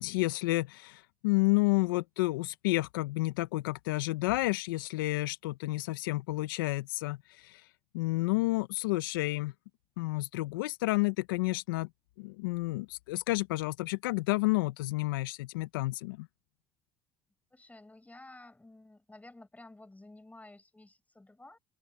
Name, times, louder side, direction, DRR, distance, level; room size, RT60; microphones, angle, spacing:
voice 1, 0.0-7.6 7.9-9.5 10.0-11.9 12.2-16.3, left 21 dB, 85° left, 1.0 m, -30 dB
voice 2, 17.5-21.6, left 2 dB, 15° left, 6.8 m, -53 dB
hypercardioid pair, 60°, 11 cm